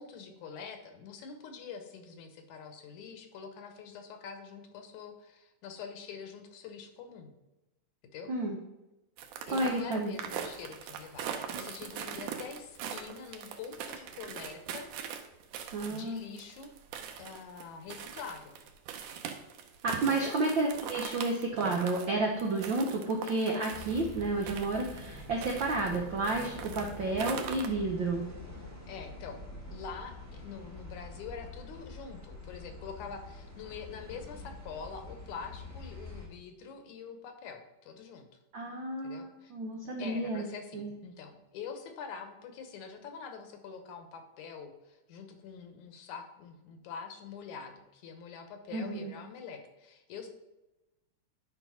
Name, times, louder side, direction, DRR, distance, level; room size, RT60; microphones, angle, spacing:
voice 1, 0.0-7.3 8.1-8.4 9.4-14.9 15.9-16.7 17.2-18.6 20.0-20.4 28.9-29.4 29.7-38.3 39.0-39.5 40.0-50.3, left 6 dB, 80° left, 6 dB, 2.4 m, -45 dB
sound 1, 9.2-26.0 26.2-27.7, right 8 dB, 90° right, 2.3 m, -41 dB
voice 2, 9.5-10.1 15.7-16.2 19.8-28.3 38.5-40.5 40.7-40.9 48.7-49.1, right 2 dB, 70° right, 1 dB, 1.1 m, -31 dB
sound 2, 23.7-36.3, left 2 dB, 10° right, 0.9 m, -46 dB
9.7 x 4.3 x 5.6 m, 0.99 s
omnidirectional pair, 3.4 m